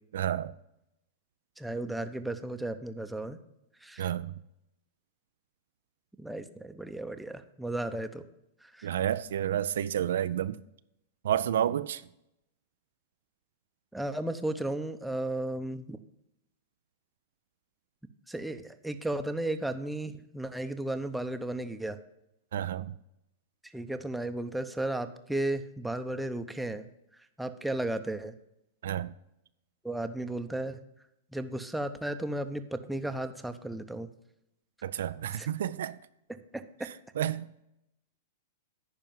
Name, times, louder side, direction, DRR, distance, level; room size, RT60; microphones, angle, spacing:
voice 1, 0.1-0.5 4.0-4.3 8.8-10.6 11.2-12.1 22.5-23.0 28.8-29.1 34.8-36.0 36.8-37.5, right 10 dB, 70° right, 0.4 m, -30 dB
voice 2, 1.6-3.4 3.8-4.1 6.2-8.2 8.6-8.9 13.9-16.0 18.3-22.0 23.7-26.8 27.4-28.3 29.8-30.8 31.3-34.1 35.4-35.5 36.3-36.9, right 1 dB, 5° right, 0.8 m, -34 dB
10.5 x 4.5 x 7.3 m
hypercardioid pair, 105°, 0 cm